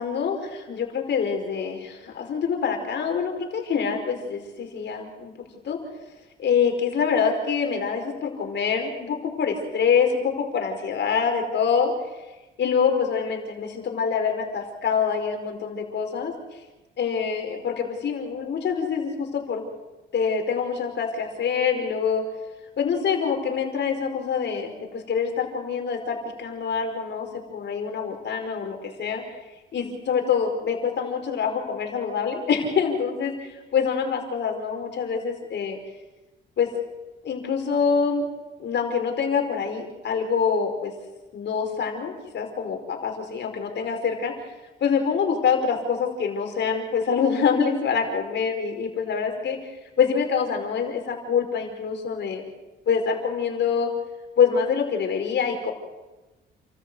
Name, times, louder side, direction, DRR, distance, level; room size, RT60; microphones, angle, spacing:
voice 1, 0.0-5.3 5.6-5.8 6.4-11.9 12.6-16.3 17.0-19.6 20.1-22.2 22.8-29.2 29.7-35.8 36.6-36.7 37.2-38.3 38.6-40.9 41.3-44.3 44.8-49.6 50.0-52.4 52.9-53.9 54.4-55.7, left 6 dB, 60° left, 4 dB, 4.8 m, -25 dB
29.0 x 14.0 x 8.0 m, 1.1 s
cardioid pair, 90°, 20 cm